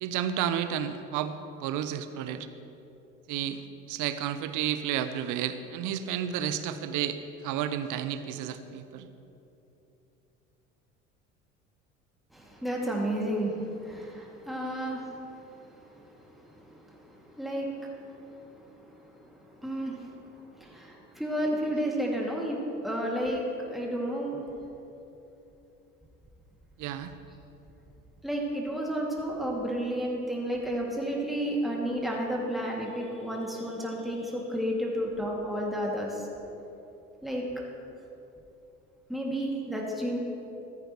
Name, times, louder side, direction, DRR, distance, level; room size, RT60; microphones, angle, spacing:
voice 1, 0.0-2.5 3.3-3.6 3.9-9.1 26.8-27.1, right 10 dB, 55° right, 11 dB, 0.9 m, -31 dB
voice 2, 12.3-24.4 28.2-36.3 37.2-37.4 39.1-40.2, equal, ahead, -2 dB, 2.5 m, -32 dB
14.5 x 14.0 x 3.2 m, 2.9 s
figure-of-eight pair, 65°, 37 cm